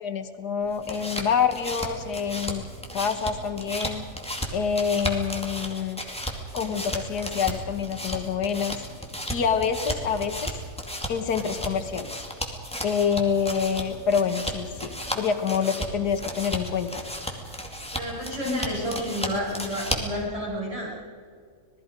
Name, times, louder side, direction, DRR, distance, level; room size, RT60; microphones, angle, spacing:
voice 1, 0.0-2.7 2.9-4.0 4.5-6.0 6.5-8.8 9.3-10.5 11.1-12.2 12.8-17.0 18.5-18.6, left 6 dB, 85° left, 8 dB, 1.8 m, -27 dB
sound 1, 0.6-20.2, equal, 5° left, 2.3 m, -34 dB
voice 2, 17.9-21.0, equal, 20° right, -5 dB, 7.0 m, -31 dB
26.5 x 19.5 x 5.2 m, 2.2 s
omnidirectional pair, 1.7 m